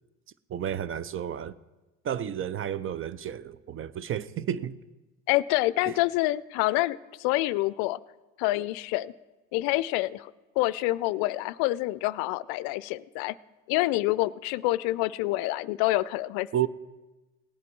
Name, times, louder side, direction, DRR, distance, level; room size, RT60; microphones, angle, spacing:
voice 1, 0.5-1.5 2.0-4.8 5.8-5.9 16.5-16.7, right 10 dB, 30° right, 0.5 m, -31 dB
voice 2, 5.3-8.0 8.4-9.1 9.5-10.3 10.6-13.4 13.7-16.5, left 18 dB, 60° left, 0.5 m, -27 dB
18.0 x 8.4 x 4.6 m
hypercardioid pair, 80°, 42 cm